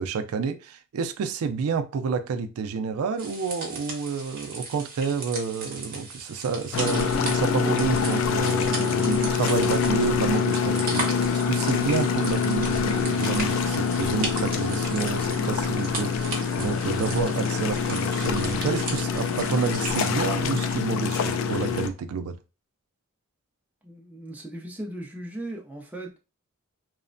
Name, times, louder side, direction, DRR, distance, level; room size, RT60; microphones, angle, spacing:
voice 1, 0.0-11.0 11.3-22.4, right 5 dB, 85° right, 0.4 m, -29 dB
sound 1, 3.2-20.1, right 3 dB, 40° right, 0.7 m, -37 dB
sound 2, 6.7-21.9, left 6 dB, 65° left, 0.3 m, -25 dB
voice 2, 23.8-26.2, right 1 dB, 5° right, 0.4 m, -37 dB
3.0 x 2.0 x 2.5 m
head